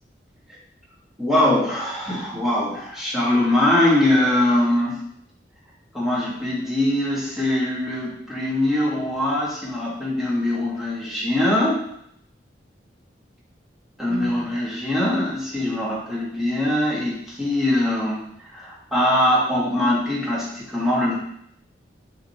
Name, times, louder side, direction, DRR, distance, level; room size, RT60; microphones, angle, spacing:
voice 1, 1.2-5.0 5.9-11.8 14.0-18.2 18.5-21.2, left 1 dB, ahead, -7 dB, 1.8 m, -22 dB
7.4 x 4.1 x 3.1 m, 0.71 s
head